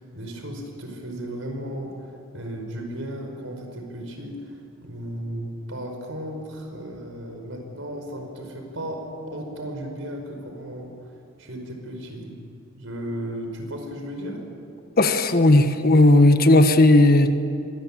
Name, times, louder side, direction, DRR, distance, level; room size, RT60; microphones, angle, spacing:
voice 1, 0.0-9.0 9.3-10.9 11.4-12.3 12.8-14.4, equal, 70° right, 3 dB, 5.3 m, -35 dB
voice 2, 15.0-17.4, left 2 dB, 45° left, 8 dB, 1.4 m, -15 dB
24.5 x 20.5 x 8.7 m, 2.5 s
head